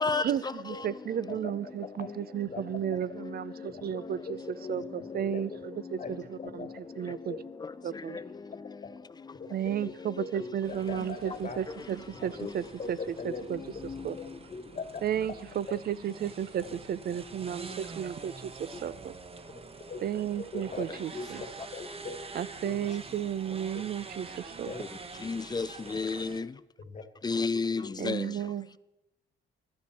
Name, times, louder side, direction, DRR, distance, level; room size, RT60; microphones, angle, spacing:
voice 1, 0.1-7.4 7.8-8.2 9.5-14.2 15.0-19.2 20.0-21.4 22.3-24.9 28.0-28.8, right 9 dB, 50° right, 0.5 m, -34 dB
voice 2, 9.6-11.6 12.2-12.3 12.8-13.4 14.2-14.8 19.5-19.6 19.9-20.8 21.1-22.2 22.6-22.8 24.7-24.9 26.8-27.0, left 4 dB, 40° left, 1.5 m, -40 dB
sound 1, 10.6-26.4, right 4 dB, 30° right, 1.0 m, -46 dB
voice 3, 25.2-26.5 27.2-28.2, left 4 dB, 20° left, 0.4 m, -30 dB
15.5 x 11.5 x 4.3 m
cardioid pair, 90°, 20 cm